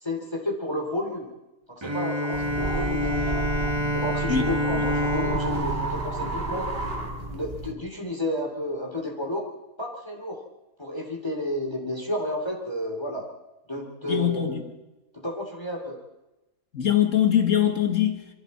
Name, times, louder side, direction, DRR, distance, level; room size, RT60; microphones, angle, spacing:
voice 1, 0.0-1.3 1.7-3.4 3.9-6.7 7.3-9.5 9.8-10.4 10.8-13.3 13.7-14.6 15.1-16.0, left 1 dB, 15° left, 2.9 m, -31 dB
Bowed string instrument, 1.8-7.3, equal, 20° right, 1.2 m, -28 dB
sound 1, 2.3-7.7, right 2 dB, 40° right, 2.0 m, -31 dB
voice 2, 14.1-14.6 16.7-18.3, left 9 dB, 60° left, 2.0 m, -22 dB
26.0 x 23.0 x 4.3 m
omnidirectional pair, 1.5 m